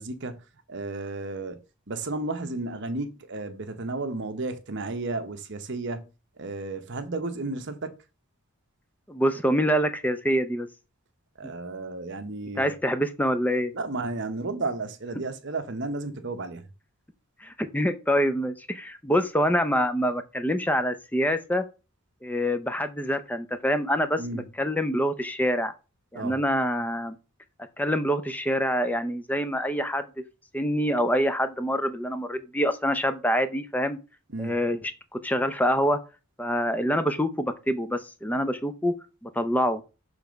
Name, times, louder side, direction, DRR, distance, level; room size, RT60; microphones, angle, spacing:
voice 1, 0.0-1.6 1.9-6.1 6.4-8.0 11.4-12.7 13.7-16.7 24.2-24.5 26.1-26.3 34.3-34.5, right 2 dB, 55° right, 1.0 m, -33 dB
voice 2, 9.1-10.7 11.4-11.5 12.6-13.7 17.4-21.6 22.2-25.7 26.1-27.2 27.8-30.1 30.5-34.0 34.4-34.8 35.1-36.0 36.4-38.9 39.2-39.8, equal, 5° left, 0.6 m, -26 dB
6.9 x 3.4 x 5.2 m
head